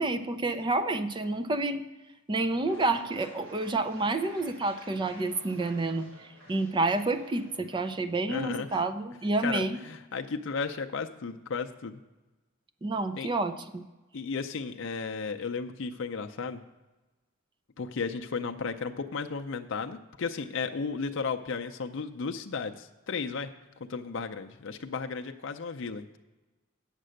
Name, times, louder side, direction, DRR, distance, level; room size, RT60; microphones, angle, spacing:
voice 1, 0.0-1.8 2.3-9.8 12.8-13.8, right 2 dB, 20° right, 11 dB, 0.4 m, -29 dB
sound 1, 2.7-8.0, equal, 65° right, 2.7 m, -51 dB
voice 2, 8.3-8.8 9.4-12.0 13.2-13.3 14.1-16.6 17.8-23.5 23.9-26.2, left 5 dB, 60° left, 6 dB, 0.5 m, -34 dB
8.9 x 6.7 x 6.3 m, 1.2 s
head